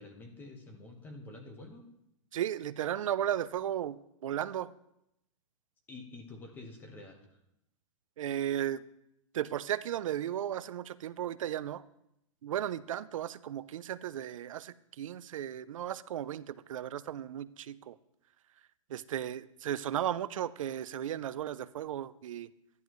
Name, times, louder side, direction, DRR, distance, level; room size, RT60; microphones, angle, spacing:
voice 1, 0.0-1.9 5.9-7.3, left 2 dB, 10° left, 3 dB, 1.2 m, -48 dB
voice 2, 2.3-4.7 8.2-8.8 9.3-11.8 12.4-18.0 18.9-22.5, right 11 dB, 70° right, 17 dB, 0.6 m, -35 dB
14.0 x 10.5 x 3.1 m, 0.81 s
hypercardioid pair, 165°, 17 cm